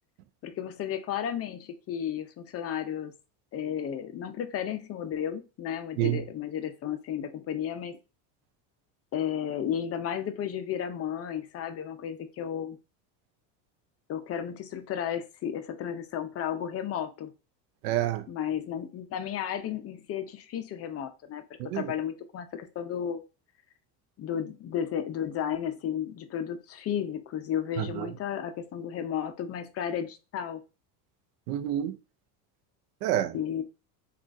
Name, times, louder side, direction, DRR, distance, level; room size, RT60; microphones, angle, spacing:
voice 1, 0.4-3.1 3.5-8.0 9.1-12.8 14.1-17.3 18.3-21.4 21.7-23.2 24.2-30.6 33.3-33.6, left 9 dB, 35° left, 0.5 m, -33 dB
voice 2, 17.8-18.3 21.6-21.9 27.8-28.1 31.5-32.0 33.0-33.4, right 13 dB, 75° right, 0.5 m, -28 dB
3.7 x 2.4 x 2.5 m
supercardioid pair, 100°, 47 cm